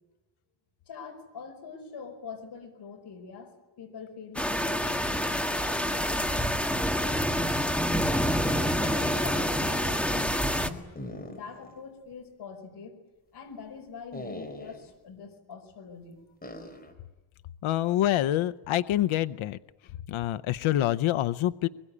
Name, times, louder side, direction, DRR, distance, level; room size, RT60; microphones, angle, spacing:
voice 1, 0.9-8.1 8.8-10.9 11.3-13.0 13.3-16.2, left 5 dB, 50° left, 3 dB, 5.1 m, -44 dB
sound 1, 4.3-10.7, equal, ahead, 1.6 m, -27 dB
sound 2, 10.9-11.8 12.1-12.2 14.1-14.9 16.4-16.9, left 1 dB, 20° left, 4.0 m, -41 dB
voice 2, 17.6-19.6 20.1-21.7, left 13 dB, 70° left, 13 dB, 0.8 m, -26 dB
23.0 x 22.0 x 9.8 m, 1.1 s
cardioid pair, 145°, 49 cm